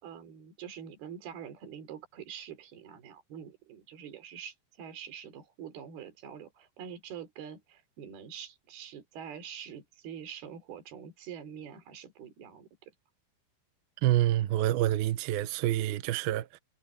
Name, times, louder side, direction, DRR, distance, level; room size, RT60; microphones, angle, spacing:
voice 1, 0.0-12.9, right 8 dB, 55° right, 5.3 m, -45 dB
voice 2, 14.0-16.6, right 14 dB, 80° right, 2.2 m, -27 dB
omnidirectional pair, 5.6 m